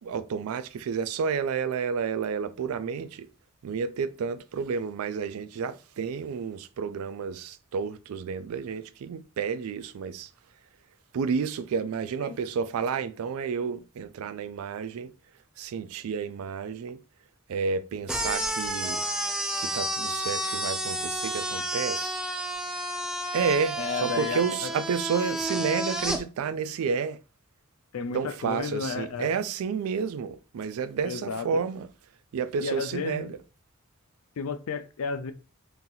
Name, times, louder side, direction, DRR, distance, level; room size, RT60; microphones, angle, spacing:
voice 1, 0.0-3.3 3.6-10.3 11.1-15.1 15.6-17.0 17.5-19.0 19.6-22.2 23.3-27.2 28.1-31.9 32.3-33.4, right 6 dB, 90° right, 0.3 m, -30 dB
sound 1, 18.1-26.2, right 1 dB, 5° right, 0.3 m, -31 dB
voice 2, 23.8-24.7 27.9-29.3 31.0-31.6 32.6-33.3 34.4-35.3, left 5 dB, 90° left, 0.4 m, -33 dB
2.8 x 2.7 x 3.8 m
head